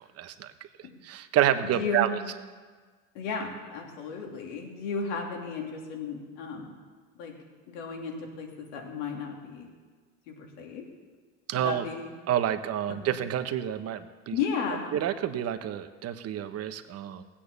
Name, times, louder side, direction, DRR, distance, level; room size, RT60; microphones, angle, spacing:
voice 1, 0.2-0.5 1.0-2.1 11.5-11.8 12.3-14.3 14.9-17.2, right 11 dB, 40° right, 9 dB, 1.1 m, -28 dB
voice 2, 1.7-2.3 3.1-6.7 7.1-7.3 7.7-9.7 10.3-10.8 11.6-12.2 12.9-13.2 14.3-14.9, left 5 dB, 75° left, 1 dB, 3.2 m, -34 dB
16.5 x 8.7 x 6.9 m, 1.4 s
supercardioid pair, 100°, 36 cm